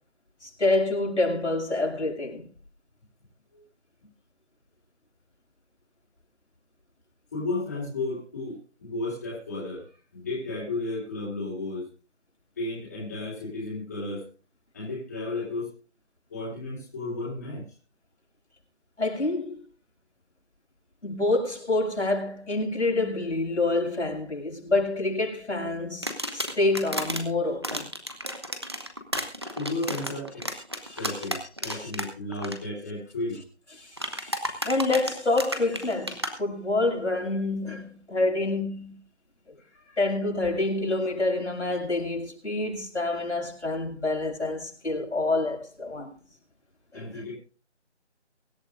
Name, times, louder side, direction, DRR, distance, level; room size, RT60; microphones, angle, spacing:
voice 1, 0.4-2.4 19.0-19.6 21.0-27.9 30.8-31.0 31.7-31.9 33.8-38.9 40.0-46.1 46.9-47.2, left 2 dB, 80° left, 6.7 m, -27 dB
voice 2, 7.3-9.9 10.1-11.9 12.6-14.2 14.7-15.7 16.3-17.6 29.6-30.5 31.0-33.4 39.6-40.0 46.9-47.3, left 2 dB, 15° left, 3.6 m, -33 dB
sound 1, 26.0-27.2 27.6-32.1 32.3-32.6 34.0-36.3, equal, 25° right, 1.1 m, -32 dB
23.5 x 12.0 x 2.6 m
figure-of-eight pair, 175°, 35 cm